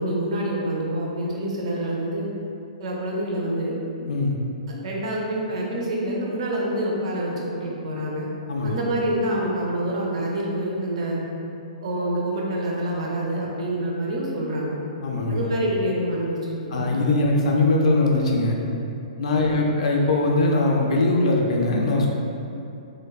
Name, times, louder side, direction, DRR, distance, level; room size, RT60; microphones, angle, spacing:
voice 1, 0.0-2.3 2.8-3.8 4.7-8.3 8.6-11.2 11.8-14.8 15.3-16.9 19.3-19.6, right 1 dB, 55° right, -3 dB, 0.5 m, -27 dB
voice 2, 4.0-4.3 8.5-8.7 15.0-15.4 16.7-18.6 19.2-22.1, left 2 dB, 60° left, -1 dB, 0.3 m, -21 dB
3.1 x 2.0 x 2.3 m, 2.8 s
hypercardioid pair, 160°, 4 cm